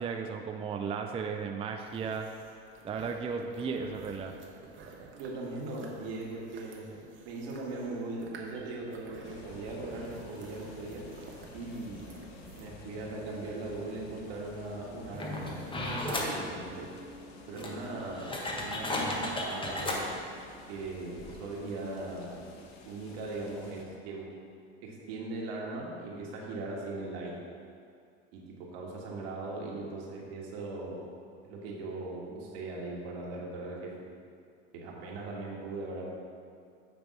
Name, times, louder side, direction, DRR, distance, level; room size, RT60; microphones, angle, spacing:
voice 1, 0.0-2.3 2.8-4.3, right 5 dB, 20° right, 4 dB, 0.4 m, -35 dB
sound 1, 1.9-12.7, right 4 dB, 35° right, 1.2 m, -52 dB
voice 2, 5.1-11.0 11.5-12.1 12.6-16.9 17.5-20.1 20.7-22.4 22.9-24.3 24.8-27.4 28.3-31.0 31.4-34.0 34.7-36.0, right 2 dB, 70° right, -2 dB, 1.8 m, -39 dB
sound 2, 9.2-23.8, left 2 dB, 60° left, 1.1 m, -50 dB
sound 3, 15.1-16.4 17.1-17.2 17.6-20.0 20.8-20.9 21.2-21.4, left 1 dB, 15° left, 1.2 m, -34 dB
9.1 x 3.4 x 5.4 m, 2.4 s
hypercardioid pair, 90°, 32 cm